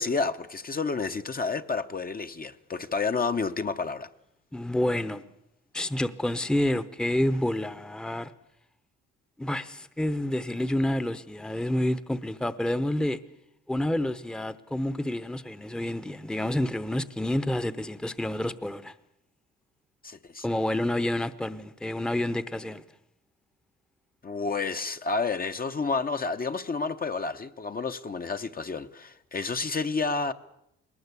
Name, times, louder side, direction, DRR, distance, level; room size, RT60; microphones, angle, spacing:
voice 1, 0.0-4.1 20.0-20.8 24.2-30.3, left 4 dB, 30° left, 0.8 m, -30 dB
voice 2, 4.5-5.2 5.7-8.3 9.4-13.2 13.7-18.9 20.4-22.8, left 1 dB, 5° left, 0.8 m, -28 dB
20.5 x 19.0 x 8.2 m
cardioid pair, 90°, 30 cm